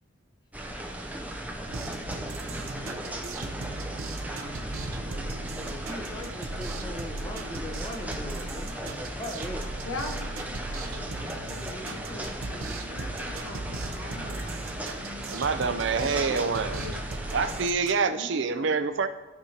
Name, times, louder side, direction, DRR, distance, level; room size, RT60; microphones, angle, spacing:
sound 1, 0.5-17.7, right 1 dB, 10° right, 0.5 m, -37 dB
sound 2, 1.7-18.0, right 2 dB, 90° right, 0.8 m, -38 dB
voice 1, 5.7-9.7 18.4-18.5, left 1 dB, 20° left, 1 dB, 0.9 m, -40 dB
voice 2, 9.8-14.7 15.5-17.0 18.1-18.7, left 2 dB, 80° left, 3 dB, 1.2 m, -42 dB
voice 3, 15.3-16.8 17.3-19.1, right 5 dB, 60° right, 11 dB, 0.4 m, -26 dB
14.0 x 5.3 x 2.9 m, 1.2 s
head